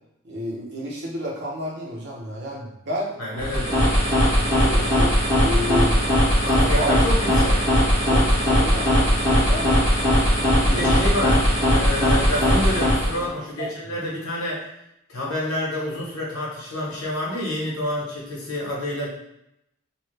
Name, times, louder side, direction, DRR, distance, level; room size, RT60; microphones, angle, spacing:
voice 1, 0.2-3.1 4.4-6.0 6.6-6.9 8.1-9.8 10.7-11.1 13.6-13.7, equal, 60° right, -4 dB, 1.0 m, -31 dB
voice 2, 3.2-3.8 6.4-7.6 10.6-14.6 15.1-19.1, left 1 dB, 85° left, -4 dB, 1.1 m, -28 dB
sound 1, 3.3-13.3, equal, 20° right, 1.3 m, -19 dB
3.0 x 2.4 x 3.1 m, 0.81 s
head